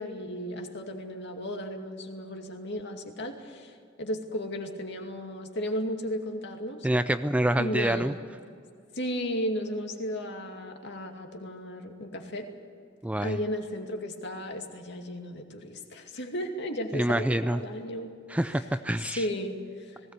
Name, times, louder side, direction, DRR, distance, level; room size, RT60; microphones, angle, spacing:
voice 1, 0.0-3.7 4.0-6.9 7.5-8.1 8.9-12.5 13.2-18.1 19.0-20.1, equal, 60° left, 3 dB, 2.4 m, -34 dB
voice 2, 6.8-8.1 13.0-13.4 16.9-17.6 18.3-19.2, right 1 dB, 5° right, 11 dB, 0.4 m, -26 dB
19.5 x 17.5 x 8.3 m, 2.3 s
head